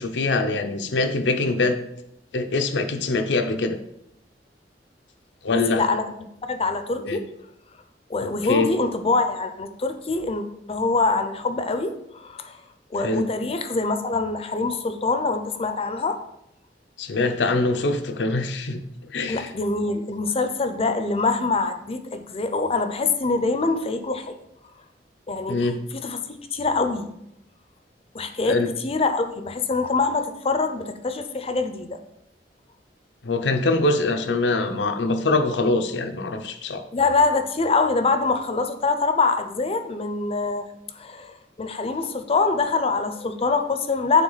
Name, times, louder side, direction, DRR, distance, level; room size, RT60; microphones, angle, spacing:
voice 1, 0.0-1.8 2.3-3.8 5.4-5.8 7.0-7.2 8.2-8.7 13.0-13.2 17.0-19.5 25.5-25.8 28.4-28.7 33.2-36.8, left 2 dB, 90° left, 7 dB, 0.7 m, -23 dB
voice 2, 5.5-7.3 8.1-12.6 12.9-16.2 19.3-24.3 25.3-27.1 28.1-32.0 36.9-40.7 41.0-44.2, left 3 dB, 35° left, 8 dB, 0.5 m, -24 dB
9.1 x 3.8 x 4.0 m, 0.81 s
head